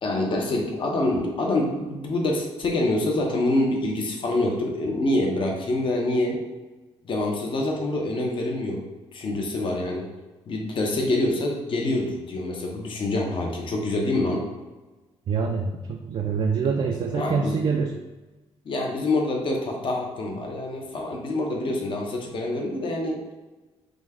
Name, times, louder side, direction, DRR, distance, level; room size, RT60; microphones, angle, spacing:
voice 1, 0.0-6.4 7.0-8.8 9.1-10.1 10.5-14.4 17.1-17.6 18.6-23.2, left 2 dB, 50° left, 0 dB, 0.9 m, -26 dB
voice 2, 15.3-17.9, right 5 dB, 50° right, 2 dB, 0.4 m, -25 dB
5.0 x 2.3 x 3.6 m, 1.2 s
cardioid pair, 110°, 11 cm